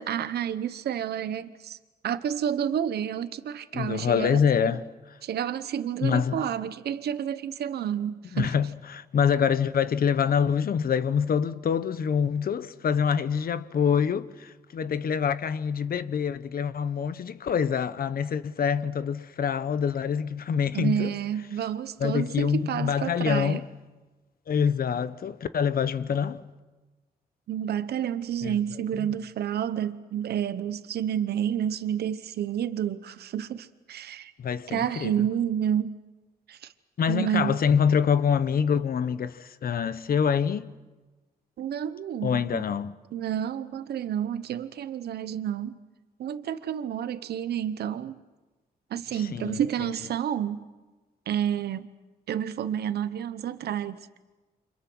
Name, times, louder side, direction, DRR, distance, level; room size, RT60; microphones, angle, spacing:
voice 1, 0.0-1.8 2.0-4.8 5.2-8.5 20.7-23.6 27.5-34.3 34.7-36.0 36.5-36.7 37.1-37.5 41.6-42.6 43.1-45.7 46.2-48.2 48.9-50.7 51.3-51.9 52.3-54.1, right 9 dB, 90° right, 1.0 m, -30 dB
voice 2, 3.7-4.8 6.0-6.5 8.3-21.1 22.0-23.6 24.5-26.4 28.4-28.6 34.4-35.1 37.0-40.7 42.2-42.9 49.1-49.6, left 7 dB, 65° left, 1.2 m, -25 dB
29.5 x 26.0 x 6.2 m
cardioid pair, 75°, 16 cm